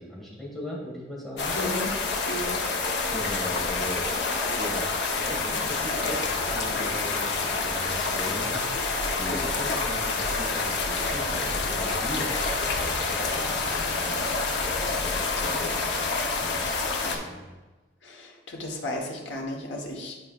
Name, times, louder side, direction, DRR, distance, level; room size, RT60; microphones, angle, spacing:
voice 1, 0.0-1.6 3.1-4.1 4.6-4.9 5.1-6.2 6.5-7.3 7.7-8.7 9.0-14.4 14.8-16.1 16.4-17.5, left 1 dB, ahead, -5 dB, 1.6 m, -38 dB
sound 1, 1.4-17.2, left 3 dB, 70° left, 0.8 m, -28 dB
voice 2, 1.5-1.9 2.3-2.6 15.4-15.5 17.0-17.3 18.0-20.2, left 1 dB, 90° left, 0 dB, 1.2 m, -34 dB
10.5 x 4.7 x 2.4 m, 1.2 s
head